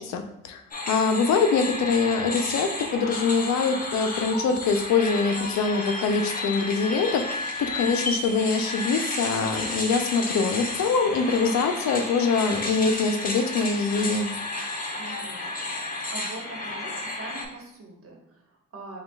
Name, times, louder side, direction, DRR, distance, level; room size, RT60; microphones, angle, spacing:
voice 1, 0.0-14.3, left 4 dB, 65° left, 6 dB, 0.6 m, -24 dB
sound 1, 0.7-17.5, left 2 dB, 30° left, 0.9 m, -32 dB
voice 2, 15.0-19.0, right 2 dB, 50° right, 0 dB, 1.2 m, -43 dB
6.8 x 2.4 x 2.3 m, 0.80 s
cardioid pair, 90°, 30 cm